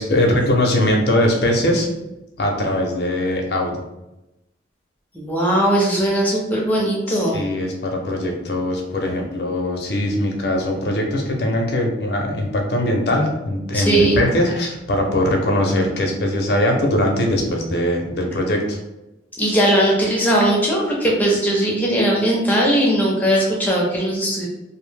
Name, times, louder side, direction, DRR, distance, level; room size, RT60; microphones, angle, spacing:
voice 1, 0.0-1.9 2.4-3.8 7.1-18.8, left 1 dB, 55° left, 1 dB, 0.5 m, -21 dB
voice 2, 5.1-7.4 13.7-14.2 19.4-24.5, right 1 dB, 10° left, -3 dB, 0.5 m, -19 dB
2.6 x 2.0 x 3.2 m, 0.95 s
head